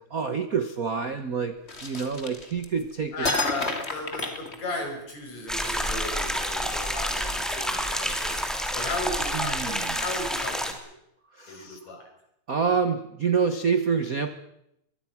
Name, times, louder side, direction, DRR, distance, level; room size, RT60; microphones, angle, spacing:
voice 1, 0.0-3.3 9.3-10.0 11.4-11.8 12.5-14.3, right 6 dB, 55° right, 9 dB, 1.0 m, -27 dB
sound 1, 1.7-2.8 3.2-5.1, left 2 dB, 20° left, 2.7 m, -31 dB
voice 2, 3.1-8.4 8.7-10.9 11.5-12.1, left 2 dB, 65° left, 2 dB, 7.1 m, -35 dB
sound 2, 5.5-10.7, equal, ahead, 2.6 m, -29 dB
23.0 x 23.0 x 6.0 m, 0.78 s
omnidirectional pair, 3.4 m